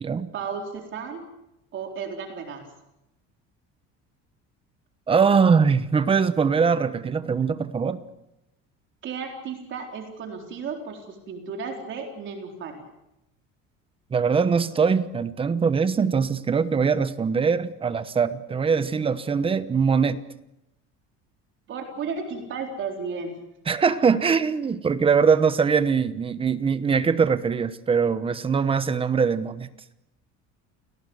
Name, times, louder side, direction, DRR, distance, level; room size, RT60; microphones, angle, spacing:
voice 1, 0.3-1.2 1.7-2.7 9.0-12.8 21.7-23.4, right 5 dB, 40° right, 3 dB, 4.1 m, -34 dB
voice 2, 5.1-8.0 14.1-20.2 23.7-29.7, right 5 dB, 20° right, 13 dB, 1.0 m, -22 dB
29.0 x 18.5 x 8.0 m, 0.89 s
cardioid pair, 170°, 29 cm